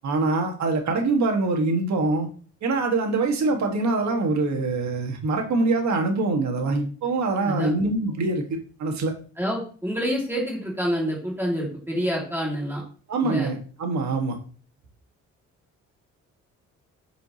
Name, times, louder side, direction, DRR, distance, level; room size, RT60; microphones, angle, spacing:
voice 1, 0.0-2.3 2.6-8.4 8.8-9.1 13.1-14.4, right 3 dB, 65° right, 3 dB, 1.7 m, -24 dB
voice 2, 9.4-12.8 13.2-13.5, equal, 5° right, -4 dB, 2.3 m, -27 dB
7.9 x 5.0 x 2.9 m, 0.41 s
cardioid pair, 90°, 30 cm